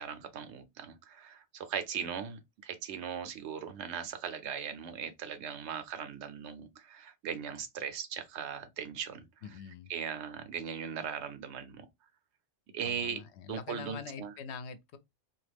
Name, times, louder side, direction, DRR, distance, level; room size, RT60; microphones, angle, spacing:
voice 1, 0.0-9.6 9.9-11.9 12.7-13.2 13.5-14.3, right 7 dB, 80° right, 0.9 m, -39 dB
voice 2, 9.4-9.9 12.8-15.0, left 6 dB, 80° left, 0.9 m, -44 dB
2.9 x 2.4 x 3.3 m
omnidirectional pair, 1.1 m